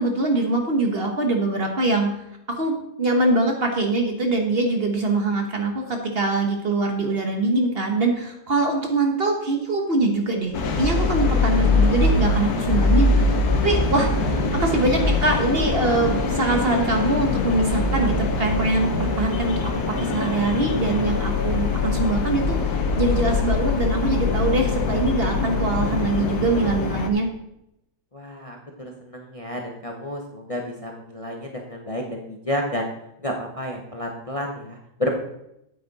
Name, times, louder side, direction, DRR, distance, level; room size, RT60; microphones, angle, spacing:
voice 1, 0.0-2.1 2.5-10.5 10.8-19.7 20.1-27.3, right 2 dB, 40° right, 3 dB, 1.3 m, -23 dB
sound 1, 10.5-27.1, left 3 dB, 75° left, 1.6 m, -23 dB
voice 2, 28.1-32.9 33.2-35.1, left 1 dB, 25° left, 1 dB, 0.9 m, -31 dB
8.9 x 8.5 x 4.1 m, 0.83 s
omnidirectional pair, 1.7 m